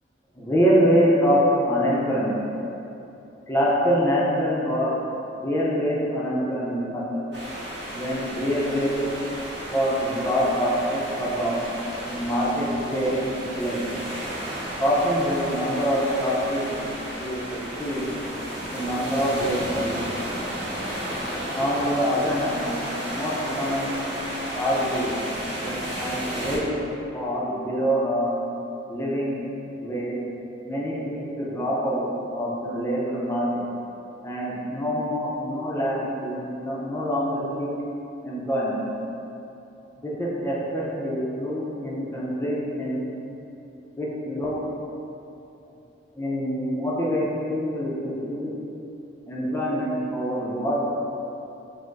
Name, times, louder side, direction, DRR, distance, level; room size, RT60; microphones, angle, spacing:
voice 1, 0.4-2.4 3.5-4.9 5.4-7.4 7.9-9.1 9.7-11.7 12.1-13.9 14.8-16.9 17.2-18.1 18.7-20.0 21.5-22.7 23.1-24.0 24.5-25.1 25.6-26.8 27.1-28.3 28.9-29.4 29.8-30.1 30.6-32.1 32.3-33.7 34.2-37.7 38.2-38.8 40.0-43.1 44.0-44.6 46.2-48.5 49.3-50.9, equal, 15° left, -6 dB, 0.5 m, -25 dB
sound 1, 7.3-26.6, equal, 75° right, 1.4 m, -33 dB
4.3 x 2.0 x 4.6 m, 2.9 s
head